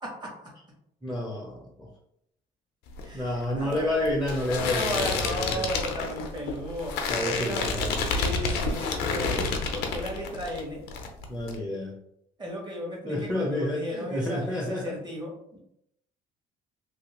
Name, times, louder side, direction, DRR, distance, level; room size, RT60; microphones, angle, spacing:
voice 1, 0.0-0.5 3.0-4.0 4.7-7.6 8.0-9.4 9.7-10.8 12.4-15.6, equal, 25° right, -2 dB, 1.2 m, -35 dB
voice 2, 1.0-1.9 3.1-5.6 7.1-8.3 11.3-12.0 13.1-15.0, left 1 dB, ahead, -2 dB, 0.6 m, -30 dB
sound 1, 2.9-10.6 10.9-11.5, left 4 dB, 90° left, 0.5 m, -29 dB
2.8 x 2.7 x 2.9 m, 0.77 s
cardioid pair, 110°, 17 cm